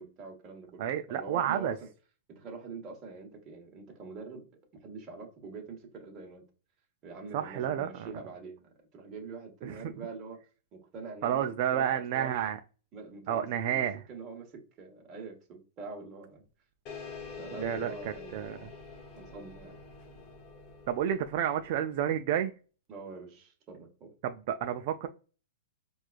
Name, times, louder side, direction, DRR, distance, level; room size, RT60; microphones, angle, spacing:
voice 1, 0.0-0.8 1.1-1.8 2.3-4.4 4.8-6.4 7.0-10.4 10.7-11.4 11.7-12.5 12.9-16.4 17.4-18.7 19.2-19.8 22.9-24.1, right 4 dB, 25° right, 1.2 m, -44 dB
voice 2, 0.8-1.8 7.3-8.1 9.6-9.9 11.2-12.6 13.3-14.0 17.6-18.7 20.9-22.5 24.2-25.1, right 10 dB, 50° right, 0.3 m, -30 dB
sound 1, 16.9-21.9, left 5 dB, 35° left, 0.8 m, -46 dB
4.5 x 2.3 x 2.4 m
hypercardioid pair, 150°, 0 cm